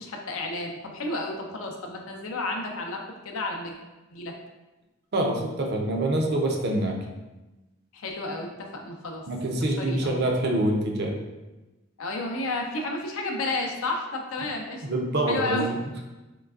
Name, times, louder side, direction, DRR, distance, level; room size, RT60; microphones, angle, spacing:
voice 1, 0.0-3.8 4.1-4.3 7.9-9.2 9.8-10.2 12.0-14.8 15.3-15.7, left 2 dB, 70° left, 2 dB, 0.5 m, -32 dB
voice 2, 5.1-7.0 9.3-11.2 14.8-15.7, right 1 dB, 45° right, 1 dB, 0.5 m, -25 dB
3.7 x 3.2 x 2.4 m, 1.1 s
head